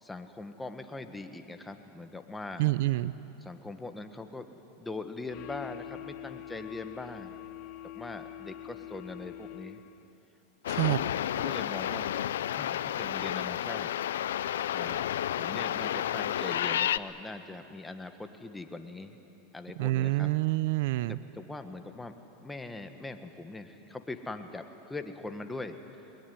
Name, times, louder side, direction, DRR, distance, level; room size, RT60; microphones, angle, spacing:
voice 1, 0.0-2.7 3.4-4.5 4.8-7.4 7.9-9.8 10.8-11.0 11.3-12.2 12.5-13.9 14.7-15.1 15.3-19.2 19.5-20.3 21.1-22.1 22.4-25.8, left 2 dB, 10° left, 7 dB, 1.7 m, -41 dB
voice 2, 2.6-3.1 10.7-11.0 19.8-21.2, right 18 dB, 70° right, 17 dB, 0.6 m, -27 dB
sound 1, 5.3-10.1, left 14 dB, 50° left, 0.7 m, -44 dB
sound 2, 10.6-17.0, left 11 dB, 85° left, 0.5 m, -31 dB
22.5 x 20.5 x 9.8 m, 2.9 s
hypercardioid pair, 115°, 0 cm